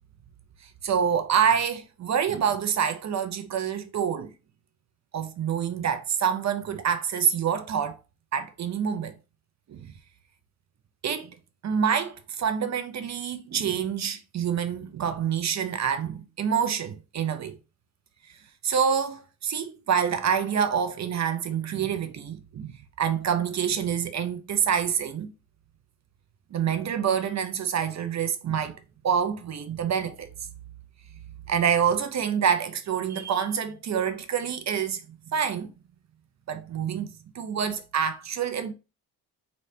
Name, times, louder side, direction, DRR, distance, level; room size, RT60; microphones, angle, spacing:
voice 1, 0.8-4.3 5.1-8.0 8.3-9.1 9.7-9.9 11.0-11.3 11.6-17.6 18.6-22.7 23.0-25.3 26.5-28.8 29.0-30.3 31.5-35.0 35.3-35.7 36.5-38.7, right 7 dB, 45° right, 0.7 m, -27 dB
4.0 x 3.3 x 2.8 m
cardioid pair, 105°, 37 cm